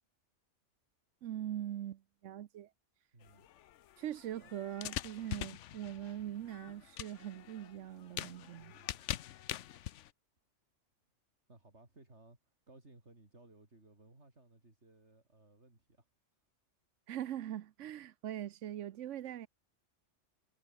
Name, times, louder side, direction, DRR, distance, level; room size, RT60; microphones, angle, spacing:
voice 1, 1.2-2.7 4.0-8.7 17.1-19.5, right 11 dB, 80° right, 1.1 m, -42 dB
voice 2, 3.1-3.5 8.5-9.2 11.5-16.1, right 2 dB, 65° right, 4.9 m, -61 dB
sound 1, 3.2-10.1, left 12 dB, 75° left, 1.0 m, -44 dB
omnidirectional pair, 1.3 m